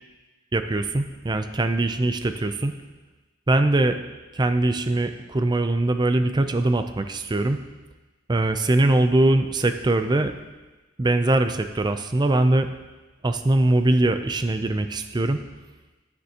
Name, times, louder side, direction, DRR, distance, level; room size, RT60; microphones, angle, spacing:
voice 1, 0.5-2.8 3.5-4.0 4.3-7.6 8.3-10.3 11.0-12.7 13.2-15.4, right 2 dB, 20° right, 8 dB, 0.5 m, -22 dB
9.7 x 9.6 x 2.9 m, 1.2 s
head